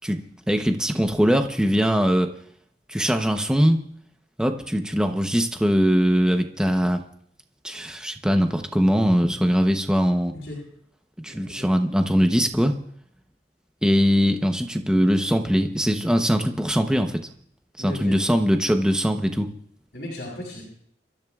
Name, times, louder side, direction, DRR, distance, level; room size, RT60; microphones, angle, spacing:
voice 1, 0.5-2.3 2.9-3.8 4.4-7.0 7.6-10.4 11.2-12.8 13.8-17.2 17.8-19.5, equal, 5° right, 5 dB, 0.9 m, -21 dB
voice 2, 11.3-11.7 17.8-18.2 19.9-20.6, left 1 dB, 60° left, -4 dB, 6.9 m, -36 dB
28.5 x 14.0 x 2.4 m, 0.65 s
head